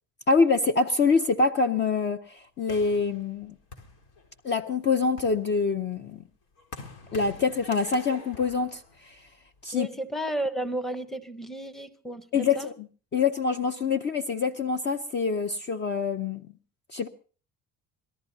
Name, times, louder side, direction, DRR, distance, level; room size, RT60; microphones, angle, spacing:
voice 1, 0.3-3.5 4.4-6.2 7.1-9.3 9.6-9.9 12.3-12.7 13.1-16.5 16.9-17.1, left 4 dB, 30° left, 8 dB, 0.6 m, -25 dB
sound 1, 2.7-4.5 5.0-9.6, left 4 dB, 85° left, 4.2 m, -46 dB
voice 2, 9.7-12.7, right 1 dB, ahead, 9 dB, 0.8 m, -33 dB
26.0 x 18.0 x 2.7 m, 0.40 s
cardioid pair, 175°, 36 cm